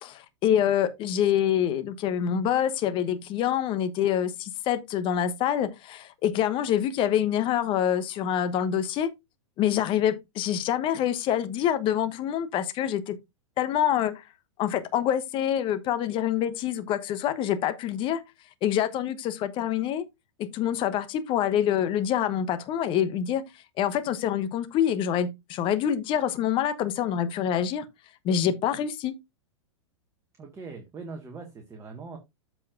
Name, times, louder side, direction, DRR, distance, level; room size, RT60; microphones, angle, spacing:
voice 1, 0.0-9.1 9.6-13.2 13.6-14.2 14.6-18.2 18.6-20.1 20.4-23.4 23.8-27.9 28.2-29.1, left 10 dB, 30° left, 1.1 m, -26 dB
voice 2, 30.4-32.2, right 4 dB, 20° right, 1.8 m, -41 dB
14.0 x 4.8 x 2.6 m
figure-of-eight pair, 100°, 16 cm